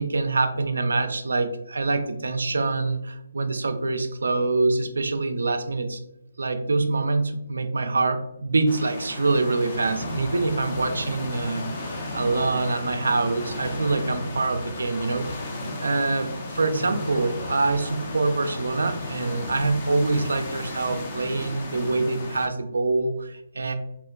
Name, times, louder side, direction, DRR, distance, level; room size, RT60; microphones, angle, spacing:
voice 1, 0.0-6.0 6.4-15.3 15.8-23.7, right 3 dB, 75° right, 7 dB, 0.3 m, -25 dB
sound 1, 8.7-22.5, left 1 dB, 35° left, 0.6 m, -34 dB
3.5 x 2.1 x 2.4 m, 0.84 s
figure-of-eight pair, 145°, 0 cm